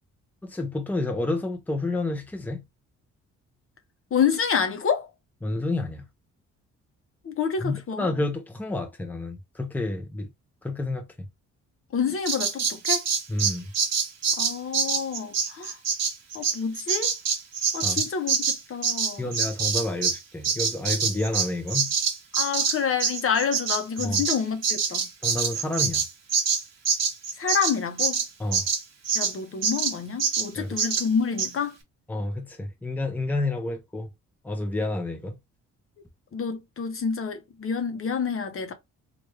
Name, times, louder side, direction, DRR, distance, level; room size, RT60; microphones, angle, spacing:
voice 1, 0.4-2.6 5.4-6.0 7.6-10.3 10.6-11.1 13.3-13.7 17.8-18.1 19.2-21.9 24.0-24.2 25.2-26.0 28.4-28.7 30.6-30.8 32.1-34.1 34.4-35.4, left 2 dB, 5° left, 0.8 m, -29 dB
voice 2, 4.1-5.1 7.2-8.1 11.9-13.0 14.4-15.8 16.3-17.1 17.7-19.3 22.3-25.1 27.4-28.2 29.1-31.8 36.3-38.7, left 6 dB, 45° left, 0.9 m, -28 dB
Bird vocalization bird call bird song, 12.3-20.2 20.4-29.3 29.6-29.9 30.2-30.5 30.8-31.1 31.4-31.5, right 6 dB, 60° right, 1.3 m, -25 dB
3.3 x 2.5 x 3.2 m
cardioid pair, 90°, 30 cm